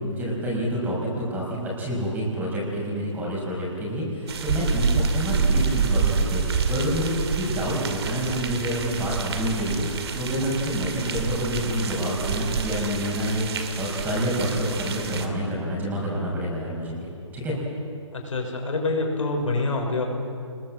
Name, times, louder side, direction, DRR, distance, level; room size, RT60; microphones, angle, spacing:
voice 1, 0.0-17.6, equal, 10° right, -4 dB, 5.8 m, -28 dB
sound 1, 4.3-15.3, right 5 dB, 55° right, 2.4 m, -27 dB
voice 2, 18.1-20.0, left 3 dB, 85° left, 1 dB, 6.1 m, -26 dB
28.0 x 21.0 x 7.7 m, 2.6 s
hypercardioid pair, 155°, 16 cm